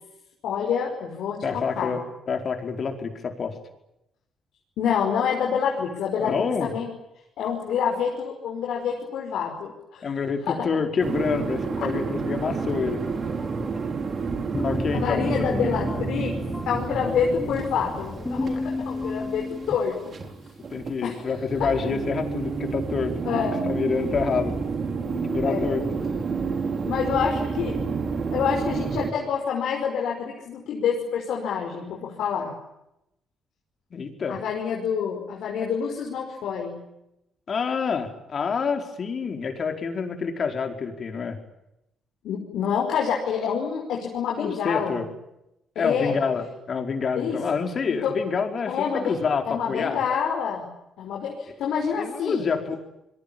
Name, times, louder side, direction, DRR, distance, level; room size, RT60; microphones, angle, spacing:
voice 1, 0.4-2.0 4.8-6.9 7.4-10.1 10.5-10.7 11.8-11.9 14.9-16.4 16.7-20.2 21.0-21.1 21.6-21.7 23.2-23.6 25.4-25.9 26.9-27.8 28.3-32.5 34.3-36.8 42.2-45.0 45.8-46.2 47.2-47.4 48.0-48.1 48.7-49.2 49.5-50.7 51.0-52.5, left 7 dB, 80° left, 0 dB, 5.4 m, -27 dB
voice 2, 1.4-3.6 6.2-6.7 10.0-13.0 14.6-15.3 20.7-24.5 25.2-25.8 33.9-34.4 37.5-41.4 44.4-45.1 45.8-50.0 51.9-52.8, left 5 dB, 50° left, 5 dB, 4.8 m, -27 dB
sound 1, 11.0-29.1, right 5 dB, 45° right, 4.0 m, -30 dB
sound 2, 13.0-19.7, left 2 dB, 15° left, 2.8 m, -33 dB
29.0 x 22.0 x 8.8 m, 0.86 s
cardioid pair, 90°, 0 cm